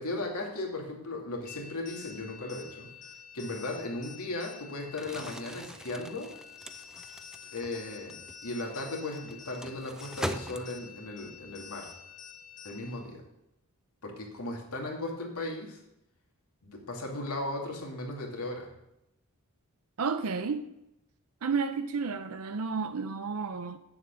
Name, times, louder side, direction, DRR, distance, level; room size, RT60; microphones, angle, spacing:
voice 1, 0.0-2.9 3.3-6.3 7.5-11.9 12.6-13.2 14.0-15.8 16.6-18.7, left 2 dB, 90° left, 2.3 m, -37 dB
sound 1, 1.5-13.1, left 7 dB, 35° left, 1.4 m, -49 dB
Crumpling crinkling, 4.9-11.1, equal, 5° right, 0.4 m, -42 dB
voice 2, 20.0-20.7 21.4-23.8, right 5 dB, 75° right, 0.6 m, -31 dB
8.2 x 7.2 x 6.7 m
head